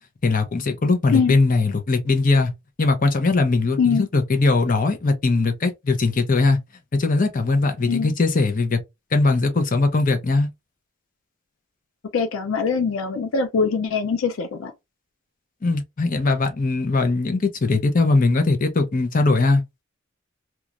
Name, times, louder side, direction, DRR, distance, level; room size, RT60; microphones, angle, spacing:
voice 1, 0.2-2.5 2.8-6.6 6.9-8.8 9.1-10.5 15.6-19.6, left 3 dB, 45° left, 0.7 m, -20 dB
voice 2, 3.8-4.1 7.9-8.1 12.1-14.7, left 5 dB, 80° left, 0.4 m, -22 dB
3.0 x 2.3 x 2.4 m
head